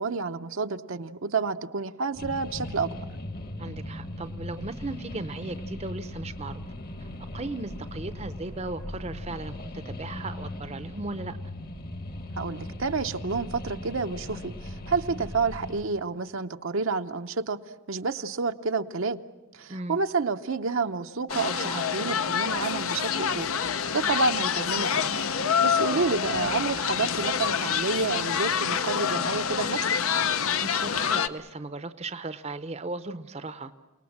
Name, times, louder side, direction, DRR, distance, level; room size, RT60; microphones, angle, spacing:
voice 1, 0.0-2.9 12.4-17.6 17.9-19.2 19.5-23.5 23.9-25.2 25.6-29.9, right 4 dB, 65° right, 7 dB, 0.7 m, -29 dB
sound 1, 2.1-15.8, left 1 dB, 40° left, 1.3 m, -38 dB
voice 2, 3.6-6.6 7.0-7.1 7.3-11.4 19.7-20.0 25.9-26.1 30.6-33.8, right 2 dB, 30° right, 11 dB, 0.7 m, -36 dB
sound 2, 21.3-31.3, left 7 dB, 75° left, 0.8 m, -27 dB
29.0 x 19.5 x 7.3 m, 1.1 s
head